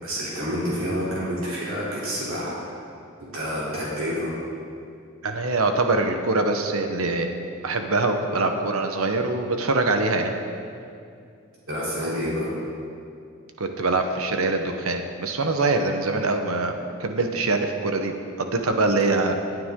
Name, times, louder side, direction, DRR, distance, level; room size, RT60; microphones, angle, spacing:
voice 1, 0.0-2.6 3.2-4.3 11.7-12.5, equal, 65° right, -7 dB, 3.5 m, -28 dB
voice 2, 5.2-7.3 7.6-10.3 13.6-16.7 17.0-18.1 18.4-19.4, right 3 dB, 85° right, 5 dB, 1.1 m, -23 dB
19.5 x 9.4 x 3.8 m, 2.5 s
head